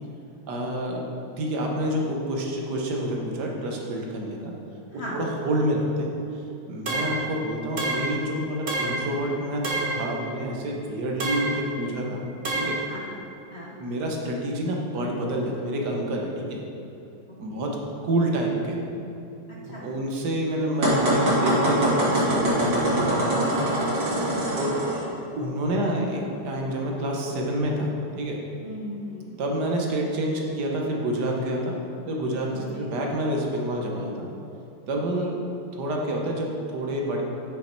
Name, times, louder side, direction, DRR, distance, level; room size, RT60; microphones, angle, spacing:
voice 1, 0.5-1.1 1.4-4.5 5.1-6.1 6.7-12.2 12.5-12.8 13.8-16.6 17.4-17.8 18.0-18.8 19.7-23.5 24.6-24.7 25.4-27.9 28.2-28.4 29.4-31.8 32.1-34.3 34.9-35.3 35.7-37.2, right 1 dB, 65° right, 0 dB, 1.5 m, -28 dB
sound 1, 6.9-7.3 7.8-8.2 8.7-9.1 9.6-10.1 11.2-11.6 12.4-12.9, right 2 dB, 45° right, 1.1 m, -28 dB
voice 2, 12.9-13.2 13.5-13.8 17.3-17.7 19.7-19.9 24.2-24.6 28.6-29.3 32.5-32.9 35.1-35.3, left 1 dB, 45° left, -4 dB, 1.1 m, -38 dB
sound 2, 20.8-25.0, right 1 dB, 85° right, 3.0 m, -23 dB
9.6 x 5.5 x 4.5 m, 2.9 s
omnidirectional pair, 2.0 m